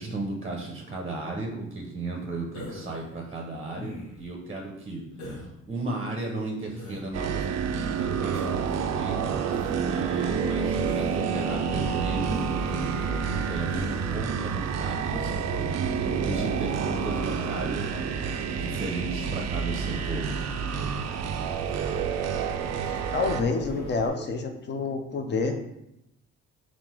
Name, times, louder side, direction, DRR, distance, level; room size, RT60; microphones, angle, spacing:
voice 1, 0.0-5.0 5.3-7.7 8.0-9.5 9.9-13.0 13.5-18.2 18.5-20.9, right 2 dB, 20° right, 1 dB, 0.7 m, -35 dB
Human voice, 2.5-3.0 3.8-4.3 5.2-5.5 6.7-7.1 8.3-8.7 9.5-9.8 10.9-11.2 12.3-12.6 13.7-13.9 15.0-15.3 16.3-16.6, left 1 dB, 80° left, 1.1 m, -40 dB
sound 1, 7.1-23.4, right 6 dB, 60° right, 0.4 m, -29 dB
Accelerating revving vroom, 9.5-24.1, left 1 dB, 65° left, 1.6 m, -45 dB
voice 2, 23.1-25.5, left 4 dB, 35° left, 5 dB, 0.6 m, -28 dB
3.8 x 2.5 x 4.4 m, 0.82 s
cardioid pair, 90°, 30 cm